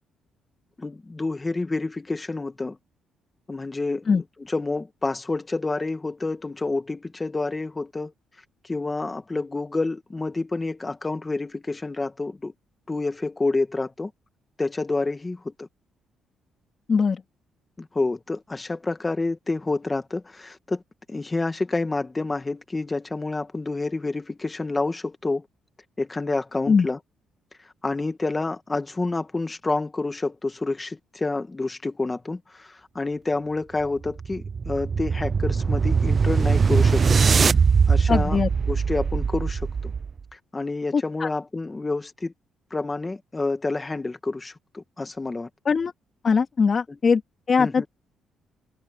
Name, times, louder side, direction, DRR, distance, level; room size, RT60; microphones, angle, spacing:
voice 1, 0.8-2.8 3.5-8.1 8.6-12.5 12.9-14.1 14.6-15.7 17.8-20.8 21.1-25.5 26.0-27.0 27.8-37.2 37.9-38.4 38.7-39.9 40.3-42.3 42.7-45.5 46.9-47.0 47.6-47.9, left 3 dB, 20° left, 1.9 m, -28 dB
voice 2, 16.9-17.2 26.7-26.9 38.1-38.5 40.9-41.3 45.7-45.9 46.2-47.2 47.5-47.9, left 5 dB, 40° left, 3.7 m, -21 dB
sound 1, 33.8-40.2, right 5 dB, 40° right, 0.6 m, -21 dB
cardioid pair, 90°, 0 cm